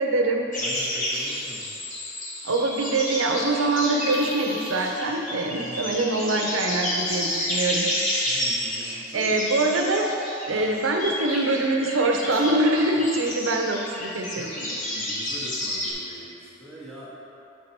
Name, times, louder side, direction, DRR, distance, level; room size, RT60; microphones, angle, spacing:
voice 1, 0.0-0.5 2.4-7.9 8.8-10.1 10.5-14.5, right 2 dB, 75° right, 2 dB, 0.6 m, -24 dB
sound 1, 0.5-15.9, left 1 dB, 40° left, 1.2 m, -31 dB
voice 2, 0.6-1.7 5.6-6.0 8.2-9.5 10.5-10.8 14.3-17.1, right 1 dB, 5° left, -8 dB, 0.9 m, -43 dB
7.3 x 4.4 x 4.3 m, 2.9 s
head